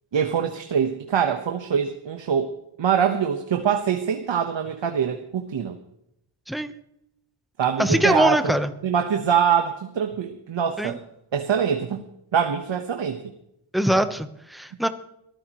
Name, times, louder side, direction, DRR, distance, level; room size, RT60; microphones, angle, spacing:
voice 1, 0.1-5.8 7.6-8.4 8.8-11.0 11.3-12.0 12.3-13.2, right 7 dB, 60° right, 6 dB, 1.2 m, -24 dB
voice 2, 7.8-8.7 10.8-11.0 13.7-14.9, equal, ahead, 9 dB, 0.9 m, -22 dB
22.5 x 14.5 x 3.1 m, 0.80 s
wide cardioid pair, 130°, 50 cm